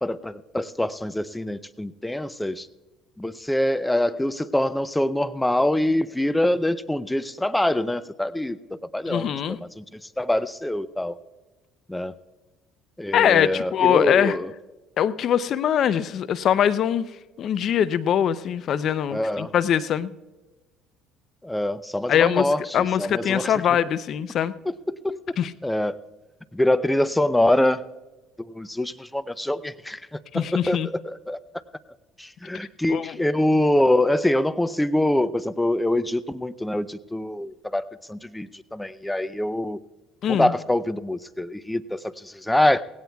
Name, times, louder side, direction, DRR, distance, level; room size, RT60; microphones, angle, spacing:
voice 1, 0.0-2.7 3.2-9.8 10.2-11.2 11.9-12.2 13.0-14.5 19.1-19.5 21.4-23.5 24.9-25.2 25.6-26.0 26.5-27.8 28.5-31.4 32.2-39.8 40.3-42.8, left 1 dB, 5° left, 15 dB, 0.5 m, -24 dB
voice 2, 9.1-9.6 13.1-14.4 15.0-17.1 17.4-20.1 22.1-24.5 25.4-25.5 30.3-30.9 32.9-33.2 40.2-40.5, left 9 dB, 55° left, 16 dB, 0.6 m, -22 dB
18.5 x 16.5 x 2.3 m, 1.1 s
supercardioid pair, 80°, 0 cm